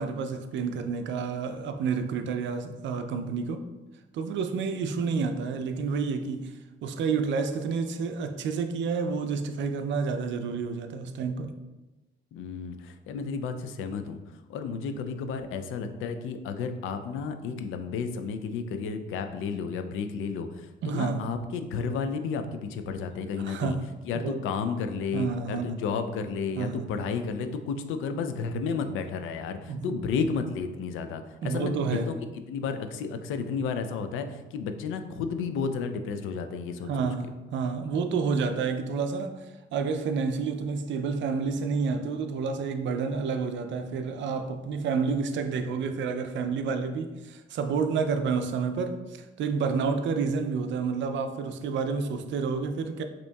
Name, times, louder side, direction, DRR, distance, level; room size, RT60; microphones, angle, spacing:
voice 1, 0.0-3.7 4.1-11.5 20.8-21.3 23.4-23.9 24.1-24.4 25.1-25.8 26.6-26.9 29.7-30.0 31.4-32.1 36.9-53.0, right 5 dB, 70° right, 0.4 m, -29 dB
voice 2, 12.3-14.2 14.5-23.8 24.1-32.1 32.5-37.1, left 5 dB, 85° left, 0.4 m, -32 dB
5.1 x 2.8 x 2.3 m
cardioid pair, 90°, 20 cm